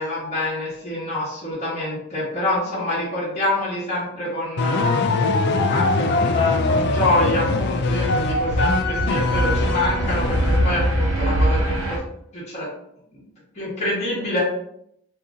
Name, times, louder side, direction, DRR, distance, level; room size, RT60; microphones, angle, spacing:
voice 1, 0.0-5.0 5.6-12.0 12.3-12.7 13.5-14.4, left 1 dB, 30° left, -9 dB, 1.2 m, -26 dB
sound 1, 4.6-11.0, left 3 dB, 50° left, 0.3 m, -22 dB
sound 2, 7.6-12.0, right 1 dB, 65° right, 0.5 m, -23 dB
2.9 x 2.5 x 3.5 m, 0.73 s
head